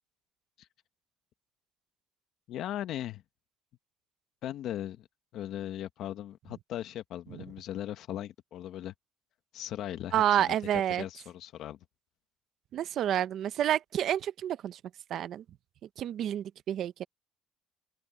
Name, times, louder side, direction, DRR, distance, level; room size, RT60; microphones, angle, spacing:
voice 1, 2.5-3.2 4.4-5.1 5.3-8.9 9.5-10.5 11.0-11.8, left 12 dB, 65° left, 1.4 m, -38 dB
voice 2, 10.1-11.0 12.7-14.8 15.1-15.4 16.0-17.0, right 11 dB, 55° right, 0.8 m, -29 dB
open air
cardioid pair, 130°, 0 cm